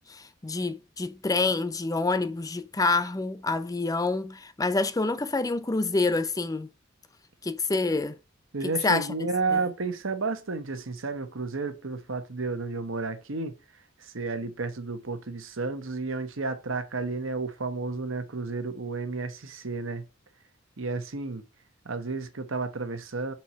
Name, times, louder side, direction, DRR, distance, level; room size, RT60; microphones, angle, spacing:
voice 1, 0.1-6.7 7.4-8.2 8.6-9.1 9.5-9.6, left 3 dB, 20° left, 0.5 m, -27 dB
voice 2, 8.5-13.6 14.0-20.0 20.8-21.4 21.8-23.3, right 3 dB, 70° right, 1.0 m, -32 dB
4.5 x 4.2 x 5.7 m
head